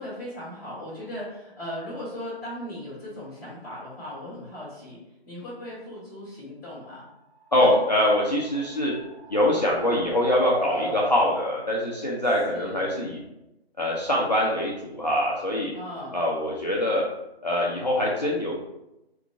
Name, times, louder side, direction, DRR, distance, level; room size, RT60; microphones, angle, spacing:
voice 1, 0.0-7.1 7.6-7.7 8.7-8.8 10.7-11.0 12.5-13.0 15.7-16.2, left 1 dB, 20° left, -7 dB, 1.2 m, -38 dB
sound 1, 7.4-13.2, right 1 dB, 75° right, 0.7 m, -39 dB
voice 2, 7.5-8.9 9.3-13.2 13.8-15.7 16.1-17.0 17.4-18.6, left 1 dB, 40° left, -4 dB, 0.4 m, -24 dB
2.9 x 2.3 x 3.4 m, 0.89 s
figure-of-eight pair, 170°, 32 cm